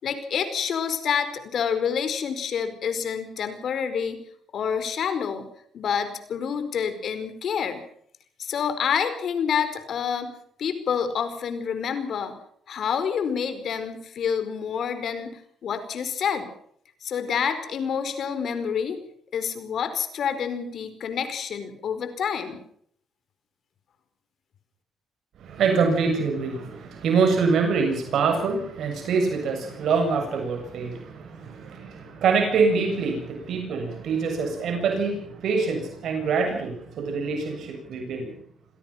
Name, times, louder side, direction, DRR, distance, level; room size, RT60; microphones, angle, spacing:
voice 1, 0.0-4.2 4.5-5.5 5.7-7.8 8.4-10.3 10.6-12.4 12.7-16.5 17.0-19.0 19.3-22.6, left 7 dB, 60° left, 10 dB, 4.8 m, -28 dB
voice 2, 25.4-38.4, right 5 dB, 70° right, 4 dB, 7.5 m, -25 dB
26.5 x 17.5 x 5.9 m, 0.65 s
cardioid pair, 90°, 0 cm